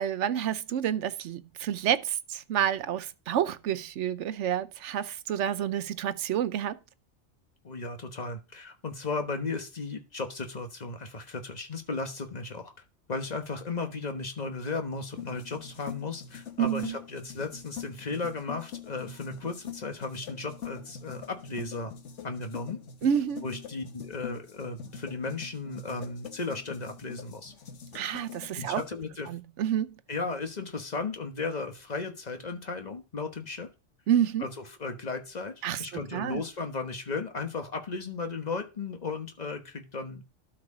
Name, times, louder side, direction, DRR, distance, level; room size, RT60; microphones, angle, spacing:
voice 1, 0.0-6.8 16.6-17.0 23.0-23.4 27.9-28.8 29.3-29.9 34.1-34.5 35.6-36.4, right 9 dB, 85° right, 1.0 m, -29 dB
voice 2, 7.6-12.7 13.1-21.9 22.2-22.8 23.4-27.5 28.6-29.3 30.1-33.7 34.4-34.5 34.8-40.2, left 3 dB, 40° left, 1.3 m, -35 dB
sound 1, 15.1-28.9, left 8 dB, 85° left, 1.5 m, -44 dB
12.5 x 4.7 x 4.9 m
omnidirectional pair, 1.2 m